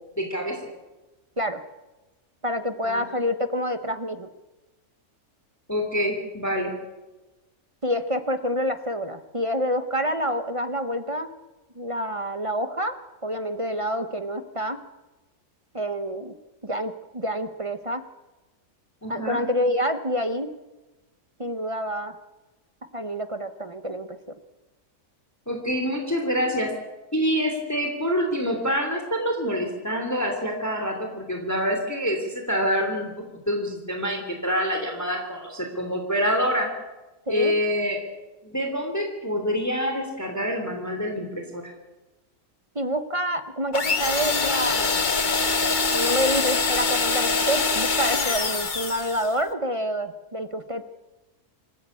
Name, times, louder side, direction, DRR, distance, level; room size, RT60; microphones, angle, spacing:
voice 1, 0.2-0.6 2.8-3.1 5.7-6.7 19.0-19.4 25.5-26.7 27.1-33.1 33.5-36.7 37.3-38.0 38.4-41.6, equal, 10° left, 3 dB, 2.9 m, -26 dB
voice 2, 2.4-4.3 7.8-11.3 11.8-13.0 13.2-14.8 15.7-16.4 16.6-18.0 19.1-20.5 21.4-22.1 22.9-24.2 37.3-37.5 42.7-45.1 45.9-50.8, equal, 25° right, 10 dB, 0.9 m, -27 dB
sound 1, 43.7-49.3, left 4 dB, 35° left, 1.1 m, -24 dB
26.0 x 14.5 x 8.4 m, 1.1 s
omnidirectional pair, 1.6 m